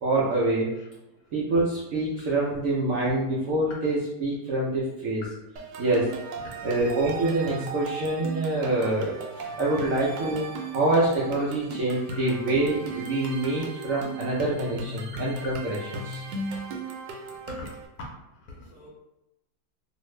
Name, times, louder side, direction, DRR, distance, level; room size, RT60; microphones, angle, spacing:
voice 1, 0.0-0.7 1.3-5.2 5.8-6.1 6.6-10.5 10.7-15.8 16.0-16.2, right 2 dB, 70° right, -6 dB, 0.8 m, -26 dB
sound 1, 5.6-17.9, right 3 dB, 85° right, 1.3 m, -36 dB
voice 2, 15.1-15.5 17.5-18.1 18.4-18.9, left 2 dB, 70° left, -2 dB, 1.0 m, -43 dB
2.7 x 2.5 x 3.0 m, 0.92 s
omnidirectional pair, 1.9 m